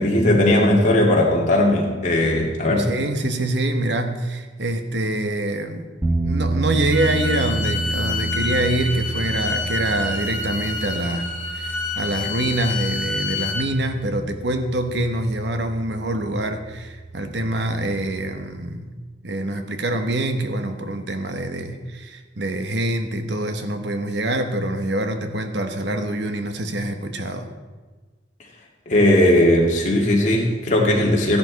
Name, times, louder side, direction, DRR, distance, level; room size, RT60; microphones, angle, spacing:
voice 1, 0.0-2.9 28.9-31.4, left 1 dB, 40° left, -1 dB, 2.3 m, -18 dB
voice 2, 2.8-19.0 19.2-27.5, right 1 dB, 70° right, 7 dB, 1.1 m, -25 dB
sound 1, 6.0-18.3, right 3 dB, 15° right, 1.5 m, -30 dB
Bowed string instrument, 6.9-13.7, left 4 dB, 85° left, 1.9 m, -28 dB
15.0 x 11.0 x 4.1 m, 1.3 s
head